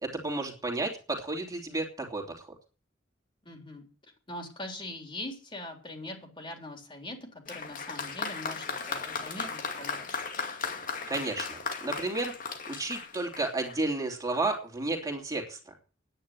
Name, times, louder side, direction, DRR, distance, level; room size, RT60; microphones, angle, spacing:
voice 1, 0.0-2.4 11.1-12.3 12.7-15.6, right 2 dB, 20° right, 2 dB, 3.3 m, -32 dB
voice 2, 3.4-3.9 4.3-10.2, left 1 dB, 25° left, 4 dB, 3.7 m, -42 dB
Applause, 7.5-13.9 14.8-14.9, left 5 dB, 45° left, 2.3 m, -36 dB
10.0 x 10.0 x 9.9 m, 0.37 s
head